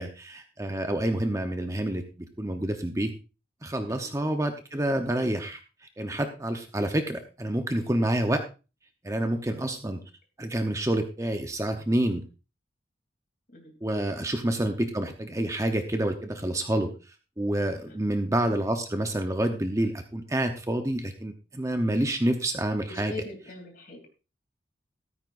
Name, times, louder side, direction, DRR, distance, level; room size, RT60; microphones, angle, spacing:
voice 1, 0.0-2.0 2.4-3.1 3.6-5.6 6.0-8.4 9.0-10.0 10.4-12.2 13.8-16.9 17.4-23.1, right 1 dB, 15° right, 6 dB, 0.9 m, -28 dB
voice 2, 22.9-24.1, left 2 dB, 45° left, 3 dB, 3.1 m, -43 dB
14.0 x 13.5 x 2.6 m, 0.31 s
head